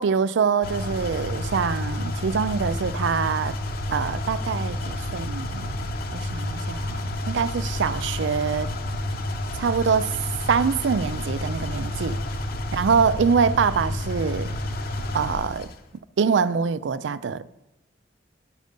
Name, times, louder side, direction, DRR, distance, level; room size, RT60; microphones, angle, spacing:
voice 1, 0.0-3.6 3.9-5.7 6.1-8.7 9.5-10.1 10.5-12.2 12.7-14.5 15.1-15.7 16.2-17.6, right 6 dB, 80° right, 0.4 m, -24 dB
sound 1, 0.6-15.7, left 1 dB, 55° left, 0.9 m, -30 dB
11.5 x 6.4 x 5.2 m
head